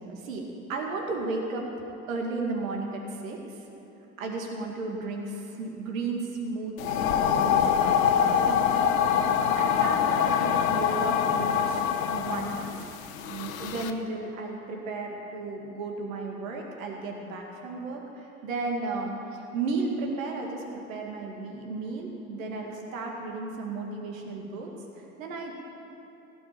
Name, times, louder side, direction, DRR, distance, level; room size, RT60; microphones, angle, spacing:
voice 1, 0.0-1.7 2.1-3.6 4.2-11.8 12.1-24.7 25.0-25.5, right 3 dB, 65° right, 1 dB, 2.1 m, -34 dB
sound 1, 6.8-13.9, left 8 dB, 65° left, 1.0 m, -25 dB
17.0 x 6.2 x 9.4 m, 2.9 s
figure-of-eight pair, 80°, 44 cm